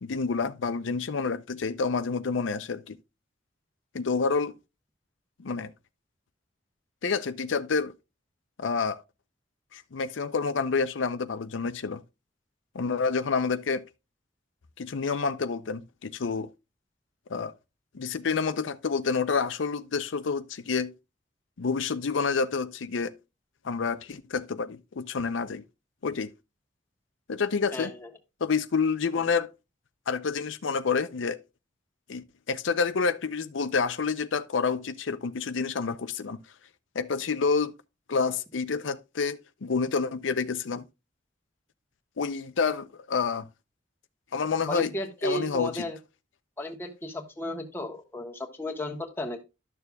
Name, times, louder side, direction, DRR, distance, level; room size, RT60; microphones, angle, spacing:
voice 1, 0.0-3.0 3.9-4.5 5.4-5.7 7.0-7.9 8.6-9.0 9.7-12.0 12.7-13.8 14.8-16.5 17.3-17.5 17.9-20.9 21.6-23.1 23.6-25.6 26.0-26.3 27.3-27.9 28.4-29.5 30.1-31.4 32.1-36.4 36.9-37.7 38.1-40.8 42.2-43.5 44.3-44.9 45.2-45.9, left 5 dB, 80° left, 0.6 m, -28 dB
voice 2, 27.7-28.1 44.7-46.0 46.6-49.4, left 1 dB, 15° left, 1.3 m, -34 dB
12.5 x 6.7 x 2.3 m
head